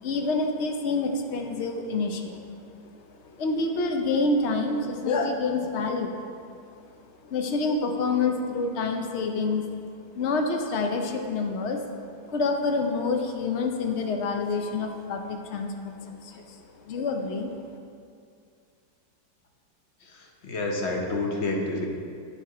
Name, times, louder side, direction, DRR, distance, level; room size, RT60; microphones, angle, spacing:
voice 1, 0.0-2.5 3.1-6.2 7.0-9.6 10.2-11.8 12.3-17.5, left 3 dB, 70° left, 4 dB, 0.6 m, -27 dB
voice 2, 20.0-21.9, left 2 dB, 50° left, 0 dB, 0.9 m, -29 dB
8.3 x 5.8 x 4.7 m, 2.4 s
omnidirectional pair, 1.9 m